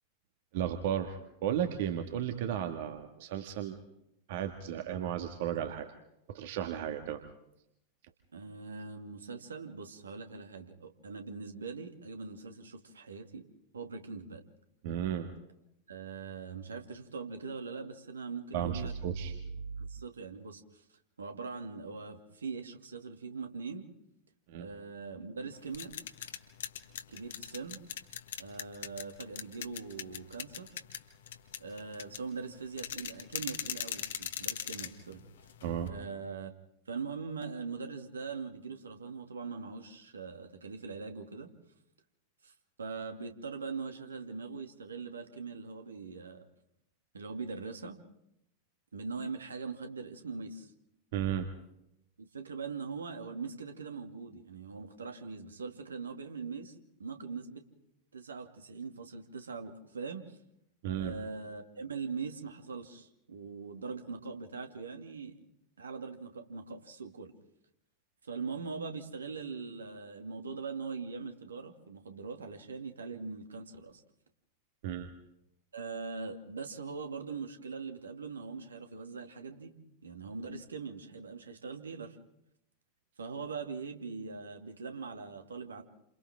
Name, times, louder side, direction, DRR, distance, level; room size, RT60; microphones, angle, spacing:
voice 1, 0.5-3.8 4.3-5.9 6.3-7.2 14.8-15.3 18.5-19.3 24.5-24.7 35.6-35.9 51.1-51.5 60.8-61.1 74.8-75.1, right 9 dB, 50° right, 6 dB, 2.0 m, -34 dB
voice 2, 8.3-13.4 13.7-14.4 15.9-18.9 19.8-20.8 21.2-23.9 24.5-25.9 27.1-27.8 28.4-30.8 31.6-35.2 35.9-36.5 36.9-41.5 42.4-42.5 42.8-46.4 47.1-48.0 48.9-50.7 52.2-56.7 57.0-57.6 58.1-60.4 60.9-65.3 65.8-67.3 68.2-74.0 75.7-79.7 80.0-82.2 83.2-85.8, right 4 dB, 70° right, 5 dB, 2.7 m, -41 dB
sound 1, 25.5-35.9, left 10 dB, 60° left, 1.7 m, -41 dB
30.0 x 28.0 x 3.8 m, 0.81 s
figure-of-eight pair, 90°, 0 cm